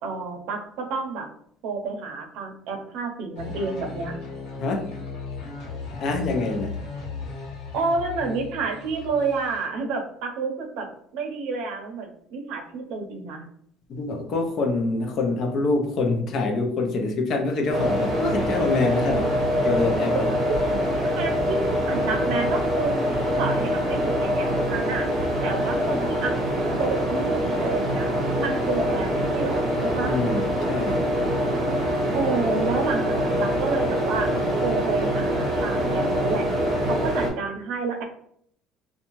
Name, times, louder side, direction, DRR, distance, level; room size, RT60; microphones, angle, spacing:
voice 1, 0.0-1.3 1.6-4.1 7.7-10.9 11.1-13.4 20.7-20.8 21.2-21.6 21.9-22.9 23.4-25.1 25.4-26.4 26.7-28.1 28.4-30.1 32.1-34.3 34.6-36.5 36.9-38.0, right 4 dB, 70° right, 4 dB, 0.6 m, -29 dB
sound 1, 3.4-9.7, left 4 dB, 80° left, 1.0 m, -36 dB
voice 2, 5.9-6.8 13.9-19.3 19.6-20.2 30.0-31.0, left 3 dB, 40° left, 3 dB, 0.5 m, -25 dB
sound 2, 17.7-37.3, equal, 30° right, 0.8 m, -24 dB
2.6 x 2.2 x 2.9 m, 0.67 s
cardioid pair, 170°, 0 cm